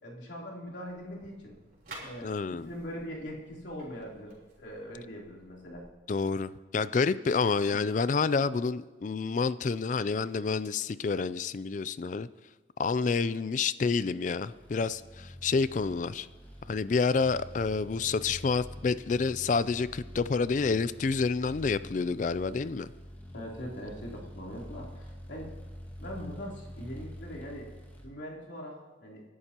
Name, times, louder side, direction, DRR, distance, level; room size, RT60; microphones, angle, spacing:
voice 1, 0.0-1.6 2.0-5.8 7.4-7.8 23.3-25.5 26.0-27.7 28.0-29.2, equal, 75° left, 3.3 m, -42 dB
sound 1, 0.8-5.9, right 2 dB, 45° right, 3.6 m, -52 dB
voice 2, 2.2-2.7 6.1-12.3 12.8-16.3 16.7-22.9, left 4 dB, 40° left, 0.3 m, -28 dB
sound 2, 14.3-28.0, equal, 10° left, 1.9 m, -46 dB
27.0 x 11.0 x 2.9 m
head